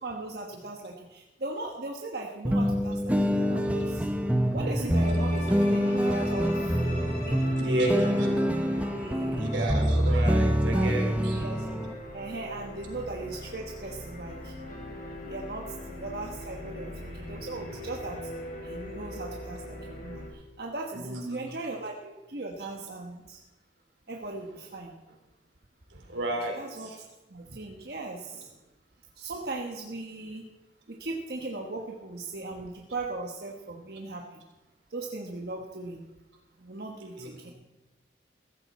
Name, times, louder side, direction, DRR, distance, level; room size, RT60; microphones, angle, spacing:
voice 1, 0.0-4.1 4.5-6.8 7.2-8.3 8.9-9.8 10.7-11.0 11.3-11.7 12.1-14.5 15.2-18.2 18.6-23.4 24.1-24.9 26.6-26.9 27.3-28.5 29.2-30.5 30.9-34.4 34.9-36.0 36.6-37.5, right 2 dB, 55° right, 0 dB, 1.2 m, -38 dB
sound 1, 2.4-11.9, equal, 5° right, 0.7 m, -26 dB
voice 2, 4.6-4.9 7.6-8.3 9.3-11.4 20.9-21.4 25.9-27.0 37.2-37.5, right 1 dB, 80° right, 1 dB, 3.5 m, -32 dB
sound 2, 4.9-20.3, left 1 dB, 45° left, 3.3 m, -41 dB
16.0 x 14.0 x 4.2 m, 1.1 s
head